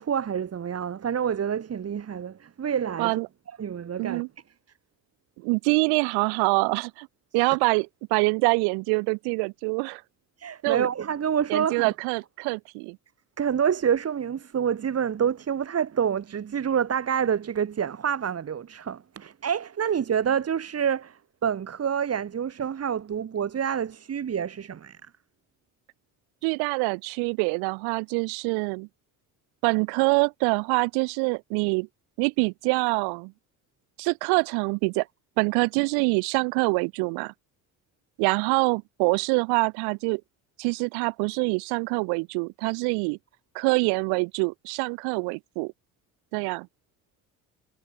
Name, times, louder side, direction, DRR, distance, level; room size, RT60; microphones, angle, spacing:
voice 1, 0.0-3.2 3.6-4.2 10.4-11.9 13.4-25.0, right 8 dB, 35° right, 2.4 m, -27 dB
voice 2, 5.4-7.1 7.3-10.0 10.6-10.9 11.5-13.0 26.4-28.9 29.6-31.9 32.2-33.3 34.0-35.1 35.4-37.3 38.2-40.2 40.6-43.2 43.5-45.7 46.3-46.7, right 33 dB, 70° right, 2.6 m, -25 dB
hypercardioid pair, 55°, 40 cm